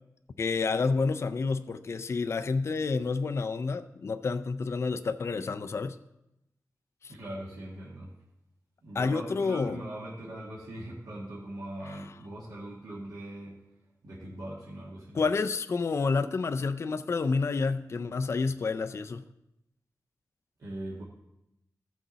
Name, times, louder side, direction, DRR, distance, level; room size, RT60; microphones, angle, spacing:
voice 1, 0.4-6.0 7.0-7.1 8.9-9.8 11.9-12.0 15.1-19.2, left 4 dB, 45° left, 0.4 m, -29 dB
voice 2, 7.1-8.1 8.8-13.6 14.0-15.2 20.6-21.0, right 1 dB, 75° right, 1.7 m, -41 dB
15.5 x 6.2 x 4.0 m
wide cardioid pair, 120°, 6 cm